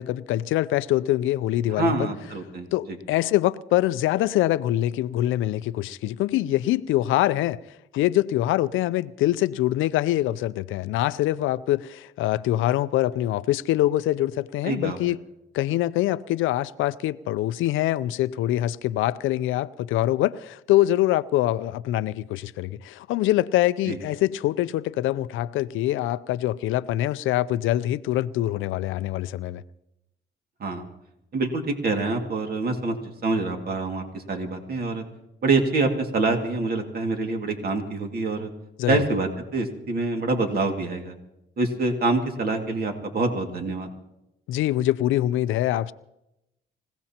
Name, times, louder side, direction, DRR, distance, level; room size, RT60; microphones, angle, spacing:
voice 1, 0.0-2.1 2.7-7.6 7.9-15.2 15.5-29.6 38.8-39.0 44.5-45.9, left 14 dB, 85° left, 0.5 m, -24 dB
voice 2, 1.7-2.7 14.6-15.0 23.9-24.0 30.6-30.9 31.3-32.9 33.2-35.0 35.4-38.5 38.9-41.1 41.6-43.9, right 3 dB, 50° right, 2.2 m, -26 dB
25.5 x 16.5 x 2.9 m
cardioid pair, 90°, 20 cm